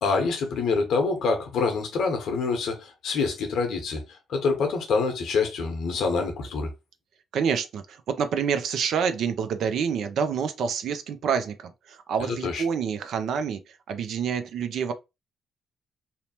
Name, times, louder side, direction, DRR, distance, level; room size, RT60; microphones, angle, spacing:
voice 1, 0.0-6.7 12.2-12.6, left 4 dB, 70° left, 0.9 m, -26 dB
voice 2, 7.3-13.6 13.9-14.9, right 7 dB, 70° right, 0.4 m, -27 dB
2.8 x 2.0 x 2.8 m
hypercardioid pair, 50°, 0 cm